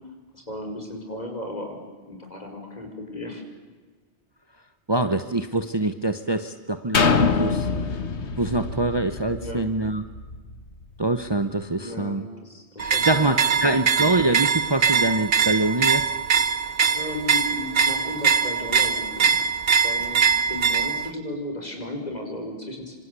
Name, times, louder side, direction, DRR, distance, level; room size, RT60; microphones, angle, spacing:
voice 1, 0.3-3.4 9.4-9.7 11.8-13.4 13.7-13.8 16.9-23.0, left 1 dB, 35° left, 4 dB, 5.6 m, -35 dB
voice 2, 4.9-8.0 8.4-10.0 11.0-12.3 12.8-16.1, right 2 dB, 25° right, 9 dB, 1.1 m, -25 dB
sound 1, 6.9-10.7 11.2-11.3, left 5 dB, 75° left, 1.7 m, -25 dB
sound 2, 12.8-21.1, right 6 dB, 60° right, 1.2 m, -22 dB
27.5 x 26.0 x 8.3 m, 1.4 s
omnidirectional pair, 1.2 m